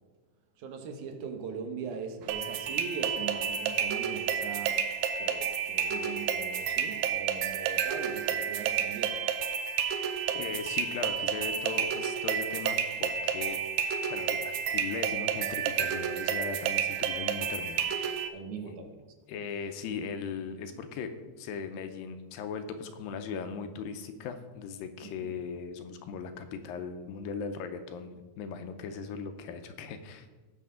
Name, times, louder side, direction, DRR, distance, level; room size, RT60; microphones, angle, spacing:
voice 1, 0.6-4.8 5.2-9.2 18.3-19.0 25.0-25.4, right 5 dB, 70° right, 4 dB, 2.2 m, -41 dB
sound 1, 2.3-18.3, right 8 dB, 85° right, 1.7 m, -30 dB
voice 2, 10.3-13.6 14.1-18.3 18.6-18.8 19.3-21.1 21.4-30.3, left 5 dB, 80° left, 8 dB, 2.4 m, -38 dB
16.5 x 6.5 x 3.8 m, 1.3 s
omnidirectional pair, 4.1 m